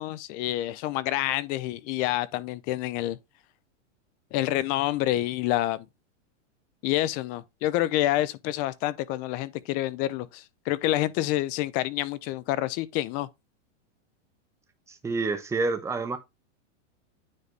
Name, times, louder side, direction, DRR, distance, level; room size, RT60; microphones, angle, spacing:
voice 1, 0.0-3.2 4.3-5.9 6.8-13.3, left 15 dB, 25° left, 0.4 m, -28 dB
voice 2, 14.9-16.2, right 3 dB, 10° right, 0.8 m, -28 dB
9.6 x 4.1 x 3.2 m
supercardioid pair, 150°, 36 cm